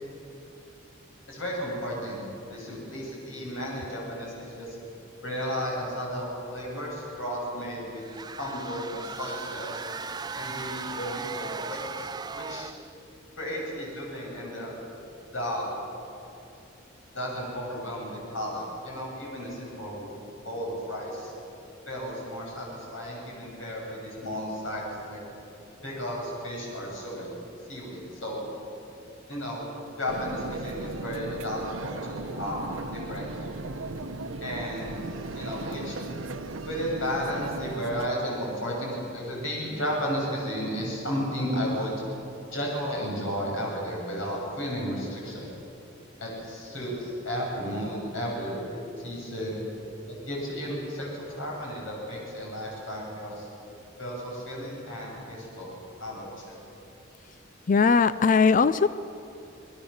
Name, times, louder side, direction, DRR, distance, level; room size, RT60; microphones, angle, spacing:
voice 1, 1.3-4.8 5.2-8.0 8.4-9.9 10.4-12.1 12.3-12.7 13.4-14.7 15.3-15.7 17.1-20.1 20.4-21.3 21.9-25.2 25.8-27.4 27.7-28.4 29.3-29.7 30.0-33.6 34.4-35.0 35.3-36.0 36.6-42.0 42.5-45.5 46.2-49.6 50.2-53.5 54.0-56.6, equal, 75° left, -3 dB, 7.8 m, -33 dB
sound 1, 8.0-12.9, right 4 dB, 20° right, 0.5 m, -37 dB
sound 2, 30.1-38.1, right 2 dB, 85° right, 1.1 m, -37 dB
voice 2, 57.7-58.9, left 5 dB, 40° left, 15 dB, 0.5 m, -19 dB
28.5 x 21.0 x 7.2 m, 2.8 s
head